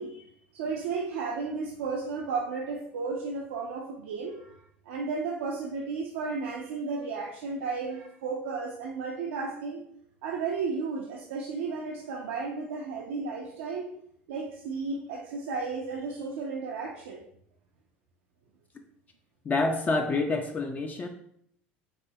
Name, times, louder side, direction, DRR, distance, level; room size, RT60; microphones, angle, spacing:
voice 1, 0.0-9.8 10.2-13.9 14.3-17.2, right 4 dB, 80° right, -1 dB, 0.4 m, -34 dB
voice 2, 19.4-21.1, left 3 dB, 30° left, 5 dB, 0.3 m, -27 dB
4.2 x 2.7 x 2.2 m, 0.68 s
hypercardioid pair, 80°, 6 cm